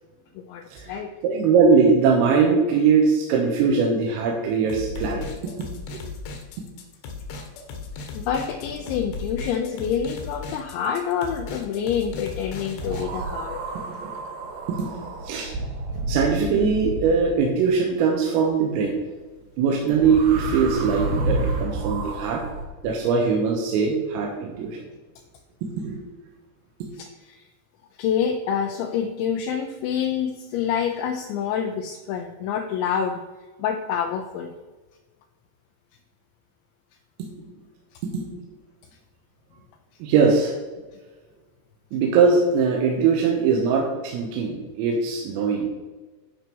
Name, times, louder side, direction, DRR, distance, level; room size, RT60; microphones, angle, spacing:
voice 1, 0.4-1.1 8.1-13.6 26.9-27.5 28.0-33.2 33.6-34.5, left 8 dB, 85° left, 4 dB, 2.6 m, -27 dB
voice 2, 1.2-5.2 5.9-6.0 14.0-14.1 14.7-15.5 16.1-19.0 19.6-22.4 22.8-24.9 25.6-26.0 26.8-26.9 37.4-37.5 38.1-38.3 40.0-40.6 41.9-45.7, right 5 dB, 85° right, 0 dB, 3.7 m, -21 dB
sound 1, 4.7-13.1, left 4 dB, 70° left, 2.6 m, -36 dB
sound 2, 12.8-17.5 19.9-22.7, right 2 dB, 70° right, 2.5 m, -30 dB
12.0 x 5.4 x 4.6 m, 1.3 s
omnidirectional pair, 6.0 m